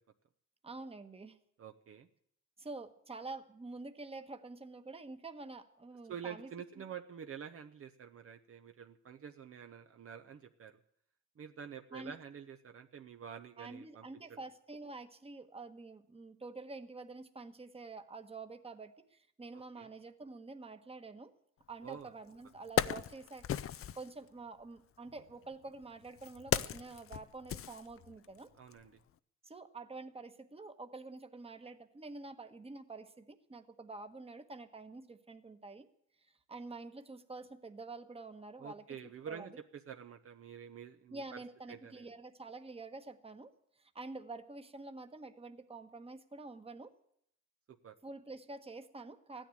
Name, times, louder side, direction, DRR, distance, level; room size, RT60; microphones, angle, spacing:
voice 1, 0.6-1.4 2.6-6.8 11.9-12.2 13.6-21.3 21.7-28.5 29.4-35.9 36.5-39.0 39.3-39.6 41.1-46.9 48.0-49.5, right 3 dB, 20° right, 8 dB, 1.3 m, -48 dB
voice 2, 1.6-2.1 6.1-10.8 11.4-14.4 19.8-19.9 21.8-22.1 28.6-28.9 38.6-41.4 41.7-42.0 47.8-47.9, right 7 dB, 50° right, 6 dB, 0.9 m, -48 dB
Wood, 21.9-22.0 22.4-24.1 25.1-28.4 28.7-28.9, left 10 dB, 45° left, 0.6 m, -37 dB
15.0 x 10.0 x 9.0 m, 0.72 s
cardioid pair, 90°, 30 cm